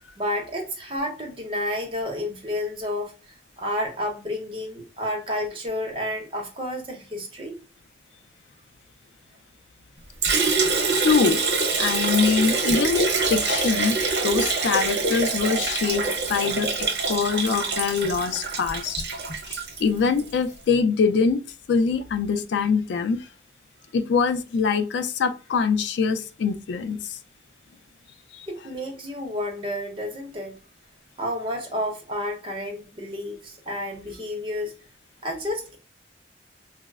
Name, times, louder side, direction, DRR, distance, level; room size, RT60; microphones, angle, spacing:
voice 1, 0.2-3.1 3.6-7.6 28.5-30.5 31.2-34.7 35.2-35.8, left 1 dB, 30° right, 0.7 m, -30 dB
Liquid, 10.2-20.3, right 4 dB, 80° right, 0.8 m, -25 dB
voice 2, 11.0-11.4 11.8-13.9 14.2-16.0 16.3-19.0 19.8-21.4 21.7-23.2 23.9-27.2 28.3-28.5, left 5 dB, 80° left, 0.3 m, -23 dB
3.9 x 2.0 x 2.3 m
head